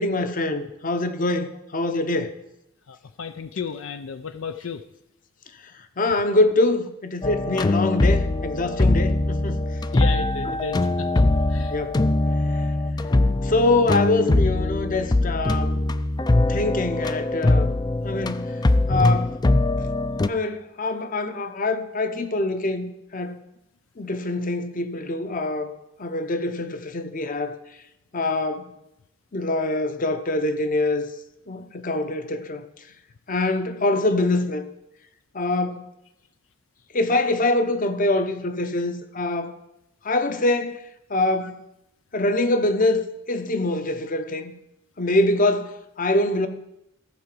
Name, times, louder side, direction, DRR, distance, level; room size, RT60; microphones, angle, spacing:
voice 1, 0.0-2.4 6.0-9.6 11.7-12.0 13.4-15.8 16.5-17.8 18.0-18.5 18.9-19.4 20.3-23.4 24.0-25.7 26.0-27.6 28.1-28.7 29.3-31.1 31.5-32.6 33.3-34.7 35.3-35.9 36.9-39.5 40.0-40.8 41.1-41.6 42.1-43.0 43.3-44.5 45.0-46.5, left 2 dB, 45° left, 0.9 m, -24 dB
voice 2, 2.9-4.8 9.9-11.7, left 5 dB, 80° left, 0.5 m, -33 dB
sound 1, 7.2-20.3, left 2 dB, 20° left, 0.4 m, -22 dB
14.5 x 4.9 x 7.7 m
head